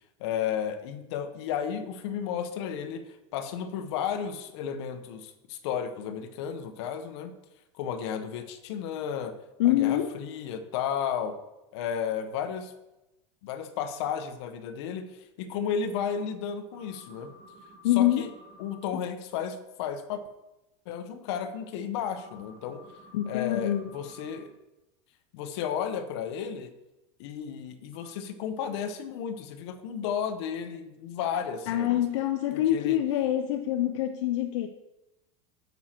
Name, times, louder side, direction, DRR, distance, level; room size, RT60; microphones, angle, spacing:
voice 1, 0.2-3.0 3.3-7.3 7.8-9.3 9.6-11.4 11.7-12.7 13.4-15.1 15.4-17.3 18.0-18.3 18.6-20.2 20.9-22.8 23.3-24.5 25.3-26.7 27.2-32.0 32.5-33.0, left 8 dB, 65° left, 8 dB, 1.1 m, -33 dB
voice 2, 9.6-10.1 17.8-18.3 18.9-19.0 23.1-23.9 31.7-34.7, left 13 dB, 80° left, 8 dB, 0.7 m, -25 dB
sound 1, 16.7-18.8 22.1-24.4 27.9-28.1, equal, 35° right, 3.6 m, -52 dB
9.5 x 7.4 x 4.5 m, 0.99 s
supercardioid pair, 160°, 15 cm